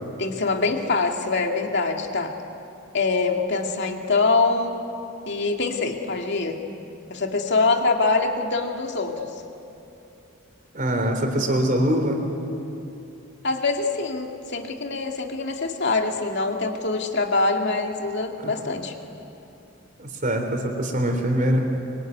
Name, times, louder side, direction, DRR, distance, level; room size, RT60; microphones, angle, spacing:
voice 1, 0.2-2.3 2.9-4.8 5.3-6.6 7.1-9.3 13.4-18.9, left 3 dB, 55° left, 3 dB, 2.4 m, -24 dB
voice 2, 10.7-12.2 18.4-18.5 20.0-21.7, equal, 40° right, 4 dB, 3.8 m, -23 dB
24.5 x 24.0 x 9.5 m, 2.8 s
head